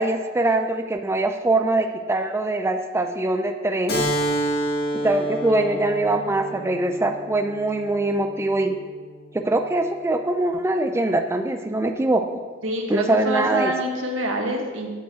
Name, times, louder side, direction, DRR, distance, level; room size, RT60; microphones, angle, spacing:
voice 1, 0.0-4.1 4.9-8.8 9.3-12.3 12.9-13.7, right 2 dB, 15° right, 6 dB, 0.4 m, -23 dB
Keyboard (musical), 3.9-9.0, equal, 55° left, 2.0 m, -29 dB
voice 2, 12.6-14.9, right 1 dB, 85° right, 2 dB, 1.5 m, -26 dB
8.1 x 5.3 x 7.7 m, 1.5 s
head